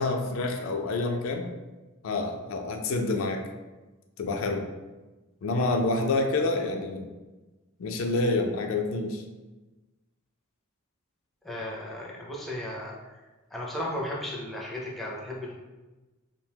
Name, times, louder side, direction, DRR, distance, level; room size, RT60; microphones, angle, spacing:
voice 1, 0.0-1.5 2.0-3.4 4.2-4.7 5.4-7.1 7.8-9.2, left 2 dB, 75° left, 4 dB, 0.3 m, -28 dB
voice 2, 5.5-5.8 11.4-13.2 13.5-15.5, left 1 dB, ahead, -4 dB, 0.4 m, -35 dB
2.7 x 2.2 x 3.3 m, 1.2 s
head